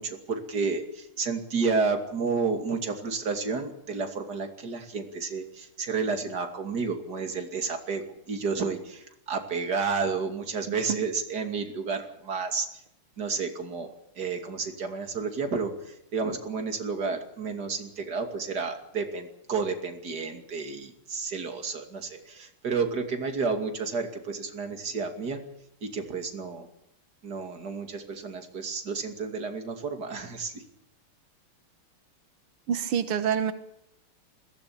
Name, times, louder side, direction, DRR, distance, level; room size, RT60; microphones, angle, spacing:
voice 1, 0.0-12.8 13.2-13.9 14.1-25.4 25.8-26.7 27.2-30.6, right 4 dB, 45° right, 5 dB, 3.1 m, -31 dB
voice 2, 32.7-33.5, right 8 dB, 90° right, 10 dB, 2.2 m, -26 dB
21.5 x 17.5 x 8.7 m, 0.77 s
omnidirectional pair, 2.4 m